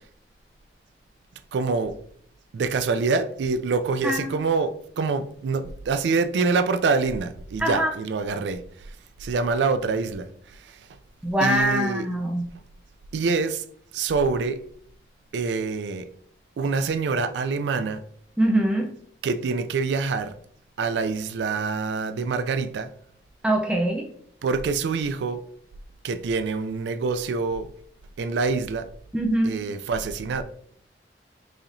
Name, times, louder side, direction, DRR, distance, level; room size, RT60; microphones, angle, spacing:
voice 1, 1.5-1.9 2.5-8.6 9.2-10.9 11.4-12.1 13.1-13.7 13.9-14.6 15.3-16.1 16.6-18.0 19.2-20.3 20.8-22.9 24.4-25.4 26.0-27.7 28.2-28.9 29.4-30.4, right 4 dB, 85° right, 0.3 m, -25 dB
voice 2, 7.6-7.9 11.2-12.5 18.4-18.9 23.4-24.1 29.1-29.6, right 1 dB, 5° right, 0.4 m, -23 dB
4.9 x 2.8 x 2.6 m
head